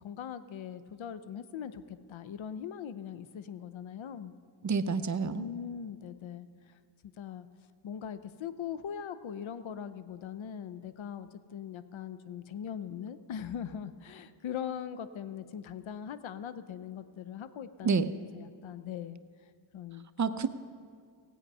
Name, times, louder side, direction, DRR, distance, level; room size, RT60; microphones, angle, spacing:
voice 1, 0.0-4.3 5.4-6.8 7.2-7.5 7.8-18.0 18.3-19.2 19.7-20.1, left 8 dB, 80° left, 13 dB, 0.7 m, -41 dB
voice 2, 4.6-5.4 17.8-18.1 20.2-20.5, right 5 dB, 40° right, 10 dB, 0.7 m, -28 dB
17.0 x 8.3 x 5.5 m, 2.2 s
cardioid pair, 60°, 47 cm